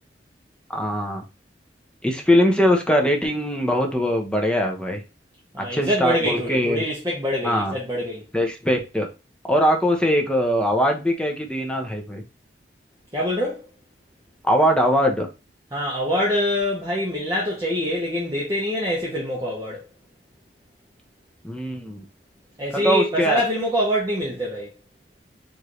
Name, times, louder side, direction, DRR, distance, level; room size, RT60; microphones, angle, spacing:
voice 1, 0.7-1.2 2.0-5.0 5.6-6.8 7.4-7.7 8.3-9.1 9.4-12.2 14.4-15.3 21.4-22.0 22.7-23.4, equal, 5° left, 0.7 m, -21 dB
voice 2, 5.5-8.2 13.1-13.7 15.7-19.8 22.6-24.7, equal, 20° right, 1.0 m, -25 dB
4.8 x 2.7 x 3.1 m
head